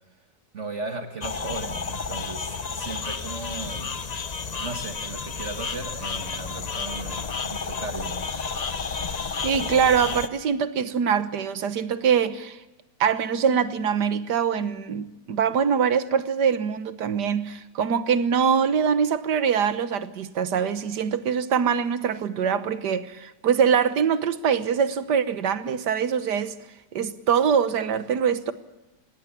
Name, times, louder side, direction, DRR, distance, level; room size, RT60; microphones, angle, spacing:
voice 1, 0.5-4.0 4.6-8.3, right 3 dB, 45° right, 1.7 m, -36 dB
sound 1, 1.2-10.3, left 5 dB, 40° left, 0.6 m, -31 dB
voice 2, 9.4-12.6 13.0-26.6 26.9-28.5, right 7 dB, 70° right, 1.7 m, -23 dB
20.0 x 17.0 x 8.5 m
omnidirectional pair, 1.9 m